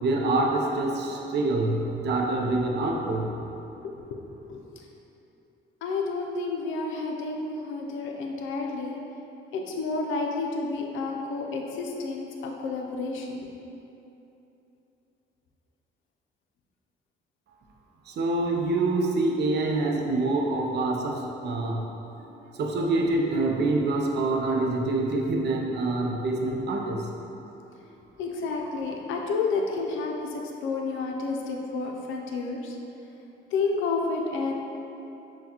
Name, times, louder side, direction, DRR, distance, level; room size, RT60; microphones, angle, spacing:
voice 1, 0.0-3.4 18.1-21.8 22.6-27.1, right 2 dB, 60° right, 0 dB, 0.6 m, -26 dB
voice 2, 5.8-9.0 9.5-13.5 28.2-32.8 33.5-34.5, left 3 dB, 80° left, 1 dB, 0.5 m, -30 dB
5.6 x 2.3 x 2.9 m, 2.9 s
cardioid pair, 90°, 20 cm